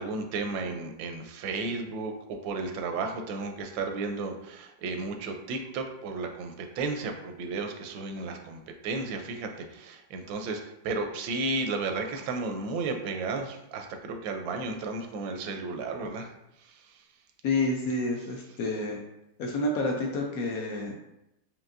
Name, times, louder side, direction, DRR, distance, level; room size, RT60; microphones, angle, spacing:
voice 1, 0.0-16.3 16.6-17.0, right 3 dB, 80° right, 5 dB, 1.3 m, -33 dB
voice 2, 17.4-19.0 19.4-20.9, left 2 dB, 70° left, 1 dB, 0.9 m, -29 dB
5.2 x 2.7 x 2.5 m, 0.86 s
omnidirectional pair, 2.0 m